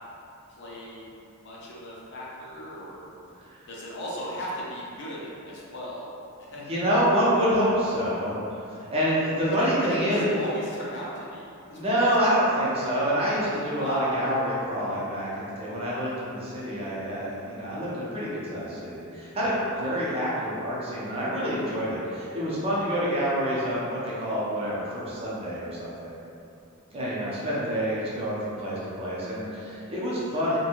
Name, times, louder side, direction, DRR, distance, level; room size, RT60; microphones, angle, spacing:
voice 1, 0.6-1.1 1.4-3.0 3.7-6.1 6.5-6.6 9.5-11.9 13.8-14.2 19.7-20.0 27.3-27.4 30.3-30.5, equal, 55° left, -6 dB, 0.5 m, -37 dB
voice 2, 6.7-10.3 11.7-26.1 26.9-30.6, equal, 25° right, -8 dB, 0.6 m, -27 dB
2.6 x 2.2 x 2.8 m, 2.6 s
head